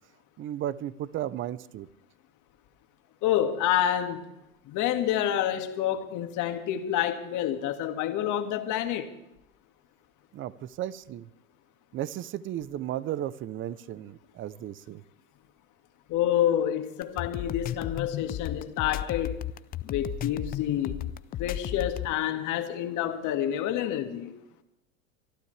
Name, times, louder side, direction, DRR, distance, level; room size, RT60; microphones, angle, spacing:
voice 1, 0.4-1.9 10.3-11.3 11.9-15.0, right 12 dB, 30° right, 0.7 m, -34 dB
voice 2, 3.2-4.2 4.7-9.1 16.1-19.4 19.8-21.0 21.4-24.3, left 11 dB, 45° left, 1.9 m, -28 dB
sound 1, 17.0-22.1, left 12 dB, 25° left, 0.4 m, -34 dB
25.0 x 12.0 x 3.4 m
hypercardioid pair, 110°, 40 cm